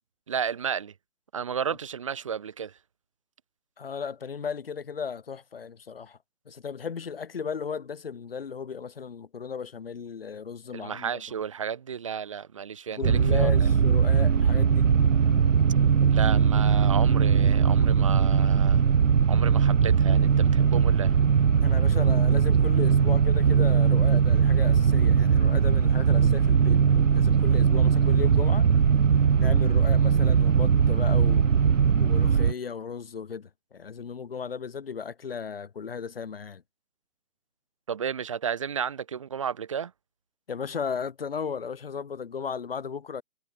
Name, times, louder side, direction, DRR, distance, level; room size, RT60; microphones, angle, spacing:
voice 1, 0.3-0.9 1.3-2.8 10.7-13.7 16.1-18.8 19.3-21.2 37.9-39.9, right 7 dB, 20° right, 1.3 m, -33 dB
voice 2, 3.8-6.2 6.4-11.2 12.9-14.9 21.6-28.7 29.4-31.7 32.0-36.6 40.5-43.2, left 6 dB, 40° left, 1.6 m, -35 dB
sound 1, 13.0-32.5, right 7 dB, 60° right, 0.8 m, -20 dB
figure-of-eight pair, 165°, 44 cm